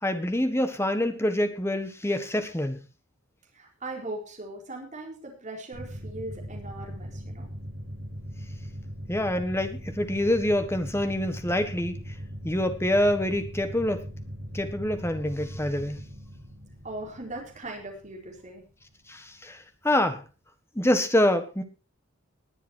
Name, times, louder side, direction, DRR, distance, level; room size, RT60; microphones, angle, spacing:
voice 1, 0.0-2.8 9.1-12.0 12.4-14.0 14.5-16.0 19.1-20.2 20.7-21.6, left 1 dB, 10° left, 8 dB, 1.5 m, -26 dB
voice 2, 3.5-7.5 16.8-18.6, right 2 dB, 35° right, -1 dB, 4.4 m, -39 dB
sound 1, 5.7-19.0, equal, 50° right, 3.4 m, -40 dB
20.5 x 7.4 x 4.6 m, 0.33 s
head